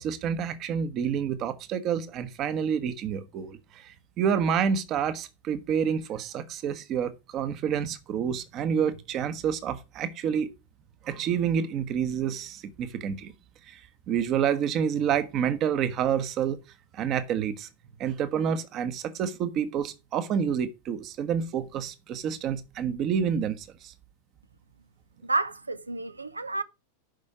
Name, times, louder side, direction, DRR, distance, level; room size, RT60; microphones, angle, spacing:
voice 1, 0.0-10.5 11.0-13.3 13.7-13.8 14.1-16.6 16.9-17.7 18.0-23.9, right 8 dB, 35° right, 1.2 m, -28 dB
voice 2, 25.2-26.6, right 3 dB, 80° right, 0.7 m, -30 dB
11.5 x 5.4 x 4.9 m
figure-of-eight pair, 90°, 0 cm